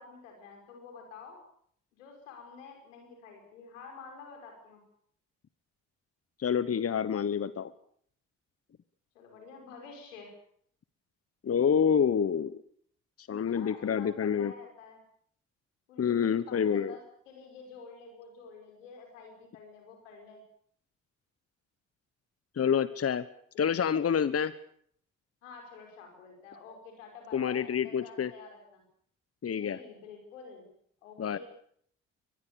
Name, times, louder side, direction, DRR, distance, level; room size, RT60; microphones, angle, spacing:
voice 1, 0.0-1.4 1.9-4.8 9.1-10.3 13.5-15.0 15.9-20.4 25.4-28.8 29.4-30.7 31.0-31.4, left 5 dB, 90° left, 3 dB, 5.7 m, -49 dB
voice 2, 6.4-7.7 11.4-12.6 13.3-14.5 16.0-17.0 22.6-23.2 23.6-24.5 27.3-28.3 29.4-29.8 31.2-31.4, left 7 dB, 40° left, 15 dB, 1.2 m, -27 dB
23.5 x 20.5 x 7.0 m, 0.65 s
hypercardioid pair, 45°, 37 cm